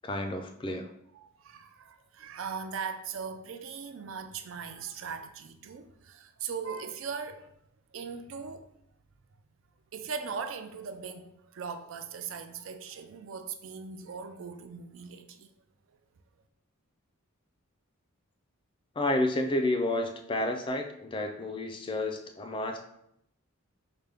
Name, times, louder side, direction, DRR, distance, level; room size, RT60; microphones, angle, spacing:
voice 1, 0.0-0.9 19.0-22.8, left 1 dB, 20° left, 0.3 m, -30 dB
voice 2, 1.1-7.5 7.9-8.7 9.9-15.5, right 6 dB, 65° right, 0.4 m, -39 dB
5.0 x 2.2 x 3.4 m
head